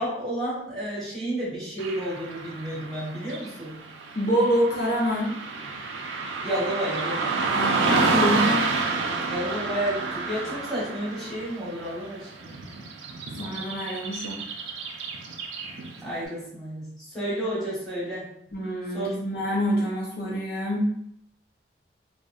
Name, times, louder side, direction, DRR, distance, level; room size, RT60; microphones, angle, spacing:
voice 1, 0.0-3.7 6.4-7.3 9.3-12.6 16.0-16.8 17.1-18.2 18.9-19.2, right 1 dB, ahead, -10 dB, 1.0 m, -31 dB
Car passing by / Traffic noise roadway noise, 1.8-16.1, right 4 dB, 85° right, 0.4 m, -29 dB
voice 2, 4.2-5.4 7.4-8.7 13.4-14.4 18.5-20.9, equal, 55° left, -5 dB, 0.5 m, -26 dB
2.6 x 2.0 x 2.3 m, 0.70 s
head